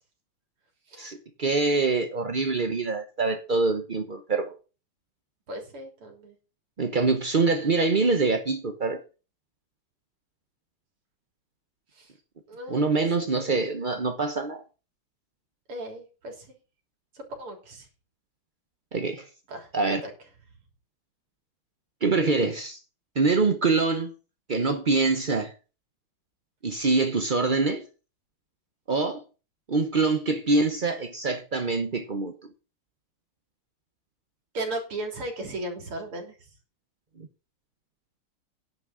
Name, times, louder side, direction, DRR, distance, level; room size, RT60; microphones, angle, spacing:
voice 1, 1.0-4.5 6.8-9.0 12.7-14.6 18.9-19.3 19.7-20.0 22.0-22.8 23.2-24.1 24.5-25.5 26.6-27.8 28.9-29.2 29.7-32.5 37.2-37.3, right 3 dB, 60° right, 0.5 m, -25 dB
voice 2, 5.5-6.4 11.9-12.1 12.5-13.0 15.7-16.5 17.1-17.9 19.5-20.1 34.5-36.5, right 1 dB, 80° right, 4.2 m, -36 dB
10.5 x 6.2 x 7.2 m
omnidirectional pair, 2.4 m